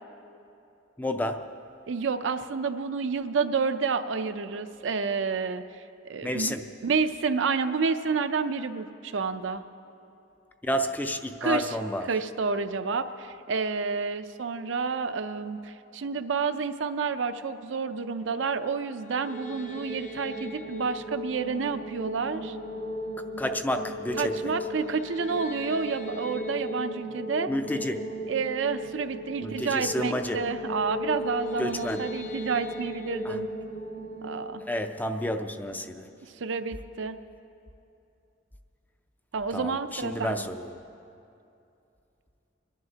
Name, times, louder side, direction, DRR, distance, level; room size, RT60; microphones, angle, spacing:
voice 1, 1.0-1.6 6.2-6.7 10.6-12.1 23.4-24.5 27.5-28.1 29.4-30.4 31.6-32.0 33.2-33.4 34.6-36.1 39.5-40.8, left 1 dB, 10° left, 0.4 m, -30 dB
voice 2, 1.9-5.6 6.0-6.5 6.8-9.6 11.4-11.8 12.1-22.6 24.2-27.5 28.3-33.5 34.2-34.6 36.2-37.2 39.3-40.5, right 5 dB, 75° right, 0.5 m, -29 dB
sound 1, 19.0-36.1, equal, 40° left, 0.9 m, -37 dB
28.5 x 11.0 x 2.8 m
head